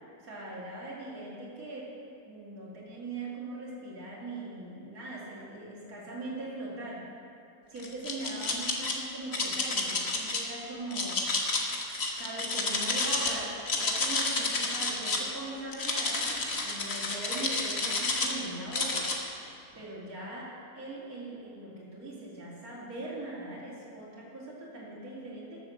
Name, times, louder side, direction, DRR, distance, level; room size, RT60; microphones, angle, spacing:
voice 1, 0.2-1.9 2.2-7.0 7.7-11.2 12.2-19.1 19.7-25.6, right 2 dB, 60° right, -6 dB, 3.1 m, -40 dB
sound 1, 7.8-8.9 9.3-10.4 10.9-13.3 13.6-15.3 15.7-18.4 18.7-19.2, left 3 dB, 45° left, 1.5 m, -30 dB
14.0 x 7.8 x 6.5 m, 2.8 s
omnidirectional pair, 1.7 m